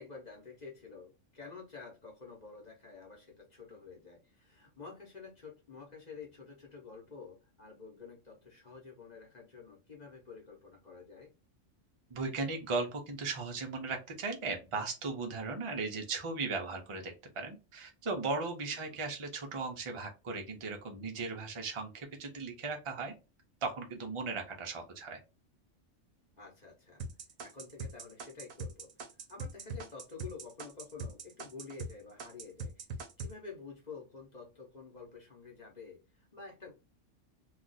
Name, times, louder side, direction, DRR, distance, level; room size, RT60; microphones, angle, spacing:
voice 1, 0.0-11.3 18.9-19.0 26.4-27.0 27.4-28.9 29.3-32.9 33.2-36.7, left 4 dB, 40° left, -1 dB, 0.9 m, -49 dB
voice 2, 12.1-23.1 23.6-25.2, right 3 dB, 50° right, 3 dB, 0.3 m, -37 dB
sound 1, 27.0-31.9 32.2-33.3, right 3 dB, 65° right, 0.8 m, -41 dB
2.4 x 2.3 x 3.9 m, 0.29 s
omnidirectional pair, 1.3 m